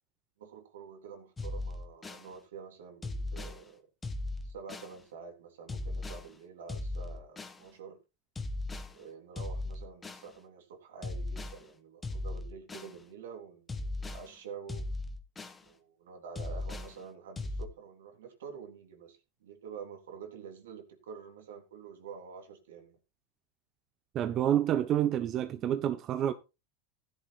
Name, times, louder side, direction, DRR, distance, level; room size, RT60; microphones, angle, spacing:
voice 1, 0.4-3.8 4.4-8.0 8.9-14.9 15.6-23.0, right 6 dB, 85° right, 3.6 m, -48 dB
sound 1, 1.4-2.3 3.0-3.6 4.0-4.9 5.7-6.3 6.7-7.6 8.4-8.9 9.4-10.3 11.0-11.6 12.0-12.9 13.7-14.3 14.7-15.6 16.4-16.9 17.4-17.7, left 2 dB, 15° left, 1.9 m, -37 dB
voice 2, 24.1-26.3, right 10 dB, 40° right, 1.0 m, -28 dB
15.5 x 10.5 x 2.5 m
hypercardioid pair, 110°, 0 cm